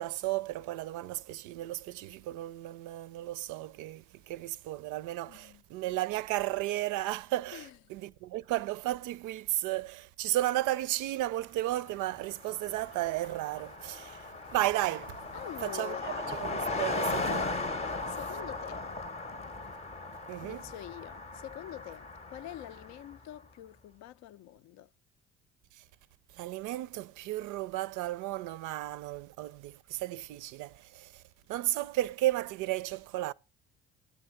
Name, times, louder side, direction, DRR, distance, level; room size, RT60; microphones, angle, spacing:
voice 1, 0.0-15.2 15.6-17.6 20.3-20.6 26.3-31.2 31.5-33.3, right 15 dB, 65° right, 0.5 m, -34 dB
voice 2, 5.3-5.6 7.5-7.8 15.3-16.3 18.1-18.9 20.4-24.9, left 12 dB, 60° left, 0.4 m, -46 dB
Car passing by, 11.9-12.0 12.2-23.2, left 3 dB, 20° left, 0.7 m, -37 dB
8.7 x 7.9 x 5.7 m
hypercardioid pair, 60°, 32 cm